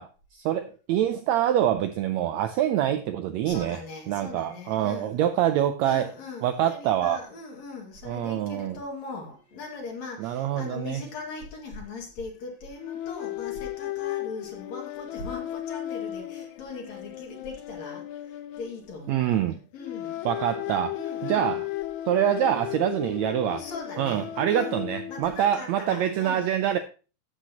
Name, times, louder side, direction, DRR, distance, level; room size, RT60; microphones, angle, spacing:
voice 1, 0.0-3.8 4.1-6.1 6.4-7.2 8.0-8.8 10.2-11.0 19.1-19.6 20.2-20.9 21.2-21.6 22.1-23.6 24.0-26.8, right 11 dB, 80° right, 1.6 m, -25 dB
voice 2, 3.4-5.2 5.8-19.2 19.7-20.3 20.9-21.6 23.5-24.8 25.1-26.4, left 3 dB, 60° left, 3.3 m, -40 dB
sound 1, 10.6-10.7 11.1-11.2 12.8-19.4 19.8-25.4, left 13 dB, 75° left, 1.9 m, -35 dB
12.0 x 8.2 x 2.9 m
omnidirectional pair, 3.7 m